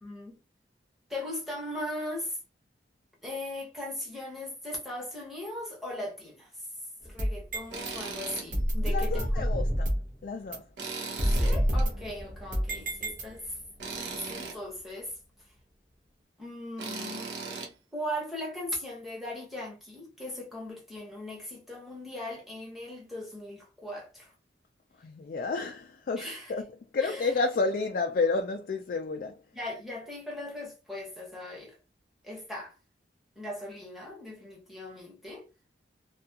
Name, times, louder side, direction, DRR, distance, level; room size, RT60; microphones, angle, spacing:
voice 1, 0.0-0.4 1.1-2.4 3.2-6.5 7.0-9.5 11.2-13.6 13.9-15.1 16.4-17.3 17.9-24.3 26.2-26.5 27.0-27.3 29.5-31.8 32.2-32.7 33.4-35.5, left 1 dB, ahead, 0.9 m, -38 dB
sound 1, 7.0-7.9 8.5-10.1 10.5-10.6 11.2-13.6, equal, 50° right, 0.8 m, -28 dB
Tools, 7.7-8.5 8.9-9.0 10.8-11.8 13.8-14.6 16.8-17.7, right 4 dB, 85° right, 0.8 m, -37 dB
voice 2, 8.8-10.0 10.2-10.7 25.0-29.4, left 3 dB, 50° left, 0.3 m, -31 dB
2.6 x 2.4 x 2.7 m
head